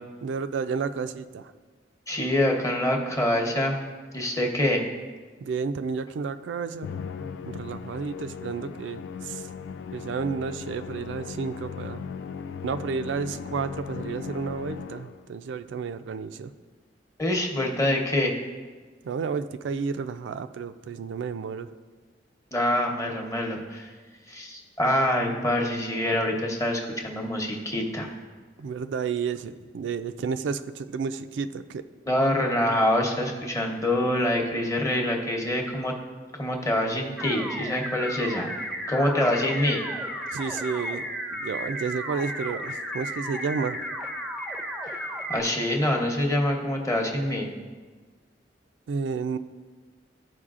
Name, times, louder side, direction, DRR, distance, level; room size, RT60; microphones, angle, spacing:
voice 1, 0.2-1.5 5.4-6.9 7.5-9.5 9.9-12.0 12.6-16.5 19.0-21.7 28.6-31.8 40.3-43.8 48.9-49.4, right 5 dB, 85° right, 11 dB, 0.3 m, -31 dB
voice 2, 2.1-3.8 4.1-4.8 17.2-18.3 22.5-23.9 24.3-28.1 32.1-36.0 36.3-38.5 38.9-39.8 44.9-45.0 45.3-47.5, left 1 dB, 15° left, 1 dB, 0.9 m, -25 dB
Musical instrument, 6.8-15.4, left 6 dB, 80° left, 0.3 m, -38 dB
sound 1, 37.2-45.4, equal, ahead, 0.5 m, -34 dB
13.5 x 4.6 x 2.4 m, 1.4 s
head